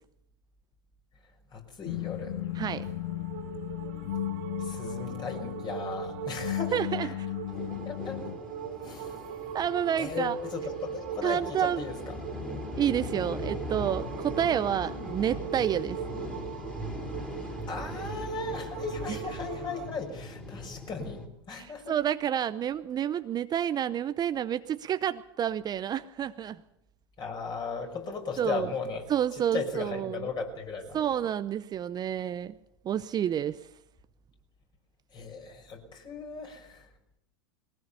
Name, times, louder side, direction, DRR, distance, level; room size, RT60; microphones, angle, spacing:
voice 1, 1.5-2.4 4.6-6.8 7.8-8.2 8.8-9.2 10.0-12.1 17.7-21.9 27.2-29.1 29.3-31.1 35.1-36.9, left 4 dB, 30° left, 4 dB, 5.7 m, -36 dB
sound 1, 1.9-8.4, left 14 dB, 65° left, 0.7 m, -35 dB
sound 2, 2.4-20.0, right 8 dB, 55° right, 2.1 m, -41 dB
voice 2, 6.7-7.1 9.5-10.4 11.2-11.8 12.8-16.0 19.1-19.2 21.5-26.6 28.4-28.7 29.1-30.3 30.9-32.6 32.8-33.7, right 10 dB, 30° right, 12 dB, 0.7 m, -29 dB
sound 3, 7.5-21.3, left 1 dB, 5° left, 4.2 m, -39 dB
21.5 x 18.5 x 7.0 m, 0.78 s
hypercardioid pair, 95°, 14 cm